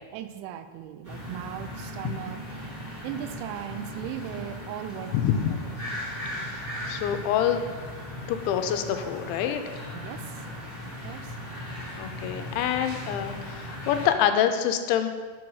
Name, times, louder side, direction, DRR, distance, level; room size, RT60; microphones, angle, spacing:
voice 1, 0.1-2.4 3.0-5.1 5.5-5.7 9.9-10.4 10.8-11.4, right 11 dB, 85° right, 10 dB, 2.9 m, -38 dB
sound 1, 1.0-14.1, equal, 20° right, 1.2 m, -38 dB
voice 2, 5.1-5.5 6.9-7.6 8.3-9.6 12.0-15.1, left 9 dB, 85° left, 8 dB, 2.9 m, -26 dB
7.2 x 6.1 x 4.7 m, 1.5 s
omnidirectional pair, 5.2 m